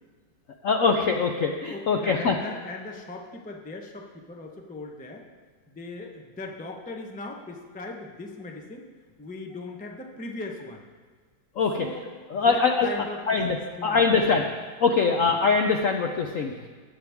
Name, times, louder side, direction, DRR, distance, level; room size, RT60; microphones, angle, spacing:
voice 1, 0.6-2.4 11.6-11.9 12.3-12.9 13.3-13.6 13.8-14.5 14.8-16.7, left 4 dB, 65° left, 3 dB, 0.8 m, -23 dB
voice 2, 1.6-5.3 5.7-8.8 9.2-10.8 11.8-12.0 12.3-14.3 15.2-15.3 16.4-16.6, left 2 dB, 10° left, 1 dB, 0.4 m, -39 dB
15.5 x 9.0 x 3.5 m, 1.5 s
omnidirectional pair, 2.1 m